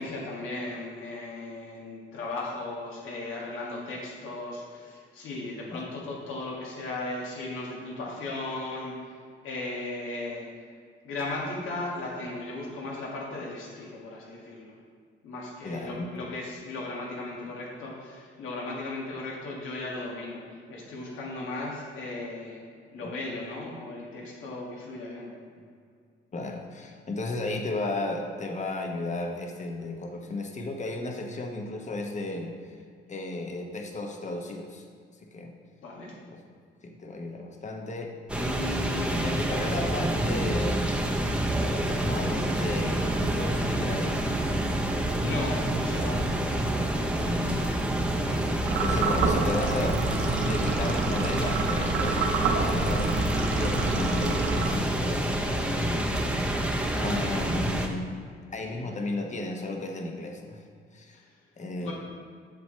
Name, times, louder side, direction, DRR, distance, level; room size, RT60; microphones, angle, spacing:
voice 1, 0.0-9.2 9.4-10.6 11.0-14.7 15.2-22.6 22.9-25.3 35.8-36.1 44.8-47.7 56.9-57.3 58.6-58.8 61.7-61.9, left 2 dB, 85° left, -3 dB, 1.9 m, -37 dB
voice 2, 15.6-16.1 23.0-23.1 26.3-32.8 33.1-34.8 35.2-35.5 36.3-36.4 36.8-41.0 41.9-44.5 46.7-46.9 47.1-47.7 48.2-56.1 56.9-58.1 58.5-60.6 60.9-61.2 61.6-61.9, left 2 dB, 35° left, 3 dB, 1.1 m, -34 dB
sound 1, 38.3-57.9, right 1 dB, 5° right, 0.8 m, -27 dB
sound 2, 48.7-55.2, right 5 dB, 75° right, 0.8 m, -30 dB
7.9 x 7.1 x 3.3 m, 2.1 s
cardioid pair, 90°, 20 cm